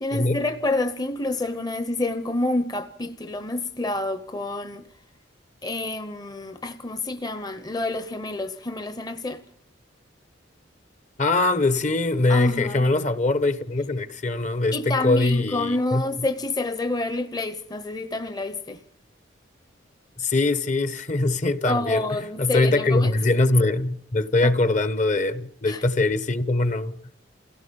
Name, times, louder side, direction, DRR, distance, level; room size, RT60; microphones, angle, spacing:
voice 1, 0.0-4.8 5.6-9.4 12.3-12.9 14.7-18.8 21.6-23.1 24.4-24.5 25.7-25.9, left 2 dB, 20° left, 0.8 m, -28 dB
voice 2, 11.2-16.0 20.2-22.0 22.4-26.9, left 2 dB, 40° left, 1.0 m, -22 dB
28.5 x 17.0 x 5.3 m
head